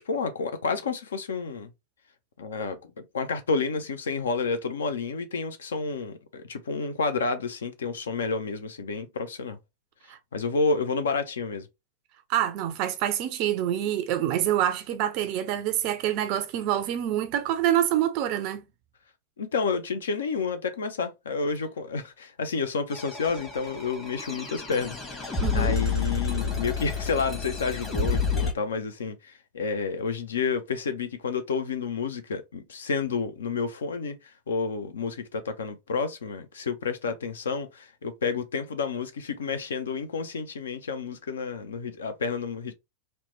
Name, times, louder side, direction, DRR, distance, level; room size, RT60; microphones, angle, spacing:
voice 1, 0.0-1.7 2.4-9.6 10.3-11.7 19.4-42.7, left 4 dB, 65° left, 0.4 m, -30 dB
voice 2, 12.3-18.6 25.4-25.8, right 11 dB, 45° right, 0.3 m, -26 dB
sound 1, 22.9-28.5, left 5 dB, 20° left, 1.0 m, -29 dB
2.9 x 2.1 x 2.9 m
figure-of-eight pair, 90°, 0 cm